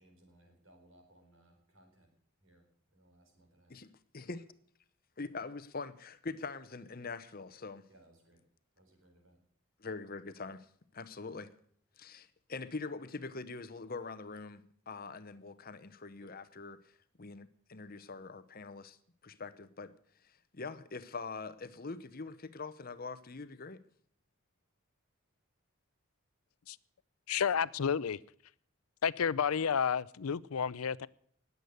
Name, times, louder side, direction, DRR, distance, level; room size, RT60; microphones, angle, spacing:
voice 1, 0.0-2.1 2.4-3.8 7.9-8.4 8.8-9.4 16.2-16.4, right 1 dB, 65° right, 4.6 m, -64 dB
voice 2, 3.7-4.5 5.2-7.9 9.8-10.7 10.9-11.5 12.0-19.0 19.2-19.9 20.2-23.8, left 4 dB, 45° left, 0.9 m, -44 dB
voice 3, 27.3-28.2 29.0-31.1, left 7 dB, 90° left, 0.5 m, -31 dB
20.0 x 8.1 x 6.7 m
head